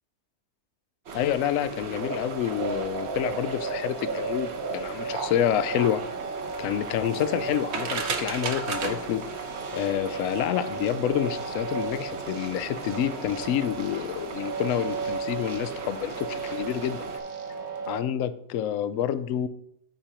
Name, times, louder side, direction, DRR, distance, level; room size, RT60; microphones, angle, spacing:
voice 1, 1.1-6.0 6.6-9.2 9.7-17.1 17.9-19.5, left 10 dB, 70° left, 12 dB, 0.8 m, -28 dB
sound 1, 1.1-17.2, right 4 dB, 50° right, 1.0 m, -37 dB
sound 2, 1.8-18.0, right 4 dB, 65° right, 1.4 m, -35 dB
13.5 x 5.0 x 2.9 m, 0.74 s
omnidirectional pair, 1.7 m